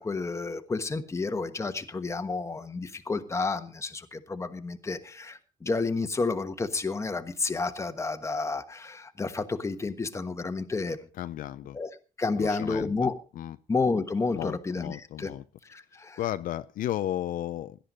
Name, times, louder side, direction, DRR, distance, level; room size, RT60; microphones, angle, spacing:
voice 1, 0.0-11.0 11.7-11.9 12.2-13.1 13.7-15.3 15.6-16.2, left 3 dB, 20° left, 8 dB, 1.3 m, -30 dB
voice 2, 11.2-11.8 12.4-12.9 13.4-13.6 14.3-15.4 16.2-17.8, left 12 dB, 75° left, 12 dB, 0.7 m, -33 dB
17.0 x 12.0 x 4.0 m, 0.35 s
cardioid pair, 130°, 14 cm